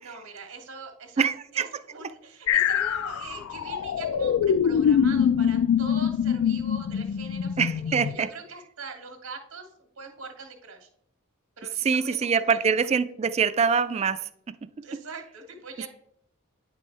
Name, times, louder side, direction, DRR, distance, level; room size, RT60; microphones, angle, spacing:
voice 1, 0.0-10.9 11.6-12.6 14.8-15.9, right 3 dB, 85° right, 3 dB, 1.5 m, -42 dB
voice 2, 1.2-1.7 7.6-8.3 11.8-14.2, right 6 dB, 30° right, 12 dB, 0.3 m, -24 dB
sound 1, 2.5-8.1, left 8 dB, 70° left, 0.3 m, -24 dB
9.1 x 5.3 x 3.3 m, 0.72 s
head